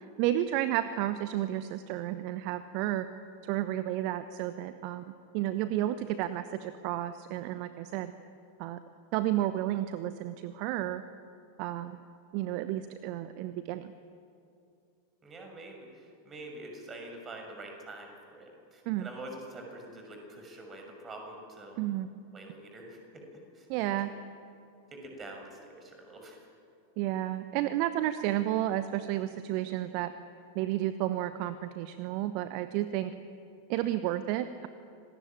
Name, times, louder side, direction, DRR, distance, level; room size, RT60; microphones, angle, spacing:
voice 1, 0.2-3.1 3.4-8.1 8.6-8.8 9.1-11.0 11.6-12.0 12.3-13.9 18.9-19.1 21.8-22.1 23.7-24.1 27.0-30.1 30.5-33.1 33.7-34.7, right 13 dB, 45° right, 12 dB, 0.9 m, -31 dB
voice 2, 15.2-21.8 22.3-23.2 23.5-23.7 24.9-26.5, right 1 dB, 20° right, 2 dB, 6.6 m, -46 dB
26.0 x 19.5 x 9.0 m, 2.5 s
figure-of-eight pair, 90°, 0 cm